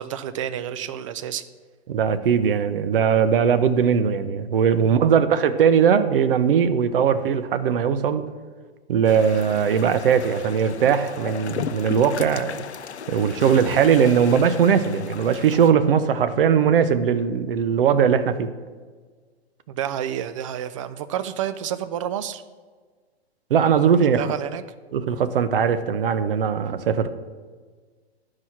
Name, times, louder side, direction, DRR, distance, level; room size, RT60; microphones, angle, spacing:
voice 1, 0.0-1.5 4.8-5.0 19.7-22.4 24.2-24.6, right 10 dB, 30° right, 12 dB, 0.4 m, -29 dB
voice 2, 1.9-8.2 8.9-12.6 13.1-18.5 23.5-24.3 24.9-27.1, right 7 dB, 55° right, 11 dB, 0.7 m, -20 dB
sound 1, 9.0-15.7, left 7 dB, 85° left, 0.5 m, -35 dB
11.5 x 4.8 x 5.8 m, 1.5 s
figure-of-eight pair, 125°, 32 cm